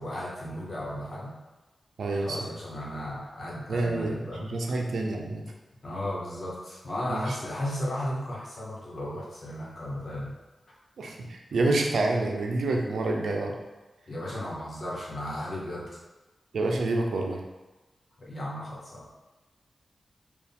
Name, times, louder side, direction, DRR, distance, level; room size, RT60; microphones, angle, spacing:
voice 1, 0.0-1.3 2.1-4.5 5.8-10.3 14.1-15.9 18.2-19.2, left 1 dB, 45° left, -5 dB, 1.1 m, -35 dB
voice 2, 2.0-2.5 3.7-5.4 7.1-7.4 11.0-13.5 16.5-17.4, right 2 dB, 90° right, 1 dB, 0.5 m, -28 dB
4.5 x 2.4 x 3.5 m, 1.1 s
wide cardioid pair, 155°, 0 cm